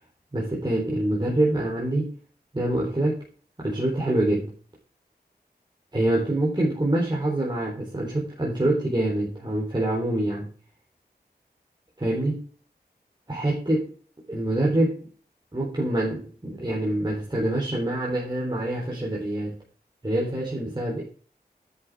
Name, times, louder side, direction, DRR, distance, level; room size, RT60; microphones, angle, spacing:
voice 1, 0.3-2.1 2.5-3.2 3.6-4.5 5.9-10.5 12.0-12.4 13.3-13.9 14.3-15.0 15.5-19.5 20.0-21.0, right 1 dB, 25° right, -4 dB, 3.9 m, -25 dB
10.5 x 6.7 x 4.8 m, 0.41 s
wide cardioid pair, 70°, 17 cm